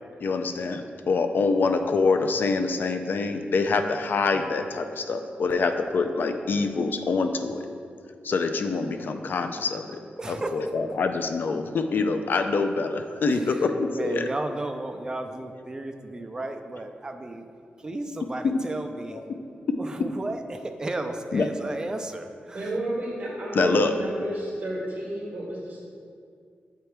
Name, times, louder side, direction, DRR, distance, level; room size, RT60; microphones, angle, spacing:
voice 1, 0.2-7.6 8.2-9.9 10.3-14.3 18.4-18.6 19.1-19.2 19.7-19.8 21.3-21.5 23.5-23.9, left 4 dB, 60° left, 7 dB, 0.4 m, -25 dB
voice 2, 10.2-10.7 13.3-17.4 17.8-19.2 19.8-22.7, right 2 dB, 20° right, 5 dB, 0.4 m, -33 dB
voice 3, 22.5-25.9, right 1 dB, 50° right, -5 dB, 1.6 m, -31 dB
8.0 x 3.3 x 4.5 m, 2.3 s
wide cardioid pair, 130°, 4 cm